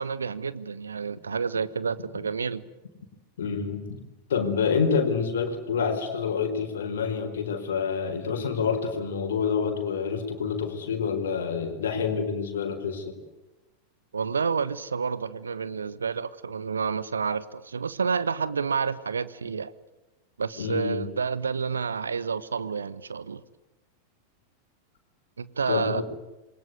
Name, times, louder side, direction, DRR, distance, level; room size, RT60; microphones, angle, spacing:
voice 1, 0.0-2.6 14.1-19.7 20.4-23.4 25.4-26.0, right 5 dB, 75° right, 16 dB, 1.2 m, -29 dB
voice 2, 3.4-3.8 4.3-13.1 20.6-21.0 25.7-26.0, left 6 dB, 60° left, 6 dB, 4.4 m, -27 dB
27.5 x 22.0 x 9.5 m, 1.0 s
figure-of-eight pair, 90°, 0 cm